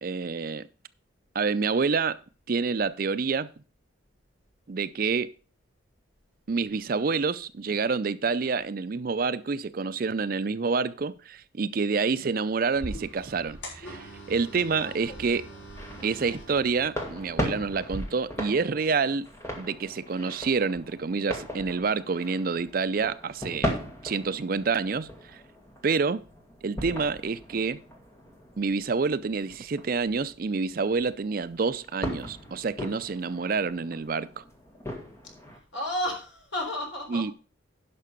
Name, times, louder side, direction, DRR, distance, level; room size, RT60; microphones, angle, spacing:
voice 1, 0.0-0.7 1.3-2.2 2.5-3.5 4.7-5.3 6.5-15.5 16.0-19.3 19.6-23.8 24.0-25.4 25.8-26.2 26.6-27.8 28.6-34.4 37.1-37.3, right 4 dB, 45° right, 0.4 m, -28 dB
sound 1, 12.7-18.0, equal, 80° left, 4.9 m, -42 dB
sound 2, 15.7-35.6, equal, 15° left, 1.7 m, -38 dB
voice 2, 35.7-37.3, left 1 dB, 65° left, 4.0 m, -33 dB
11.0 x 5.9 x 5.2 m
head